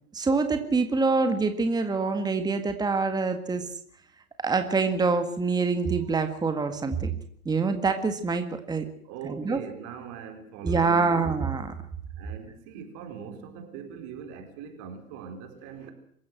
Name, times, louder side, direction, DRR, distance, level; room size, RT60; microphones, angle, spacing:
voice 1, 0.1-3.6 4.4-7.1 7.5-8.9 9.2-9.6 10.6-11.7, right 4 dB, 10° right, 1.9 m, -25 dB
voice 2, 9.0-11.3 12.2-15.9, right 7 dB, 40° right, 4.5 m, -41 dB
26.5 x 16.0 x 7.7 m
hypercardioid pair, 115°, 44 cm